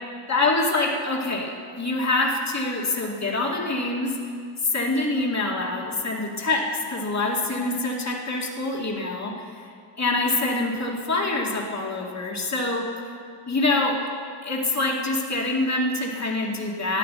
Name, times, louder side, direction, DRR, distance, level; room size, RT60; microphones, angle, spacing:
voice 1, 0.3-4.2 4.7-9.3 10.0-12.9 13.5-14.1 14.4-17.0, left 2 dB, 35° left, -1 dB, 2.1 m, -25 dB
13.5 x 9.3 x 7.5 m, 2.3 s
cardioid pair, 65°, 49 cm